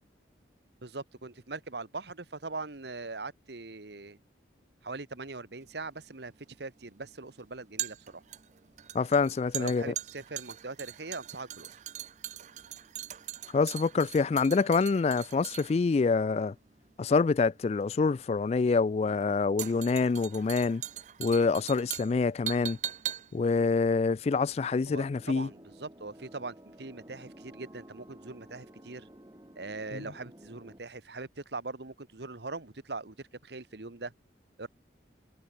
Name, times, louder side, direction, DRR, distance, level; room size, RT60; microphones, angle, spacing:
voice 1, 0.8-4.2 4.8-6.3 6.6-8.2 9.6-11.8 24.9-29.1 29.6-33.1 33.4-34.1 34.6-34.7, right 3 dB, 65° right, 1.4 m, -41 dB
sound 1, 5.6-24.9 25.2-25.3, right 12 dB, 40° right, 0.4 m, -41 dB
voice 2, 8.9-9.9 13.5-16.5 17.0-20.8 21.2-22.8 23.3-25.5 29.9-30.0, left 4 dB, 35° left, 0.3 m, -26 dB
sound 2, 25.0-30.8, right 1 dB, 20° right, 2.4 m, -53 dB
head